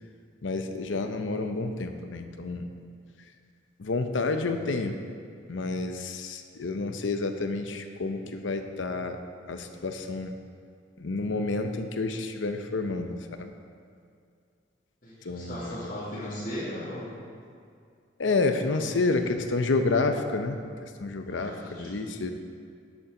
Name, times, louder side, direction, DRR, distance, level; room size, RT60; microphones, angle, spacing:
voice 1, 0.4-2.6 3.8-4.9 5.5-9.2 9.5-10.3 11.0-13.5 15.2-15.9 18.2-22.3, left 3 dB, 90° left, 7 dB, 0.7 m, -29 dB
voice 2, 15.0-17.1 18.7-19.0 21.3-21.9, left 1 dB, 50° left, -12 dB, 2.2 m, -37 dB
12.0 x 7.3 x 3.8 m, 2.3 s
head